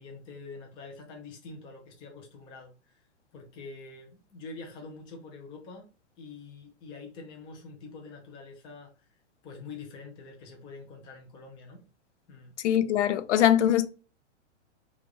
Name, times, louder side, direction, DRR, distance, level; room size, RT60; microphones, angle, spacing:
voice 1, 0.0-3.0 3.3-5.9 6.2-8.9 9.4-11.8 12.3-12.5, left 4 dB, 15° left, 0.5 m, -45 dB
voice 2, 12.6-13.9, left 11 dB, 75° left, 0.5 m, -22 dB
3.1 x 2.4 x 3.8 m
hypercardioid pair, 150°, 35 cm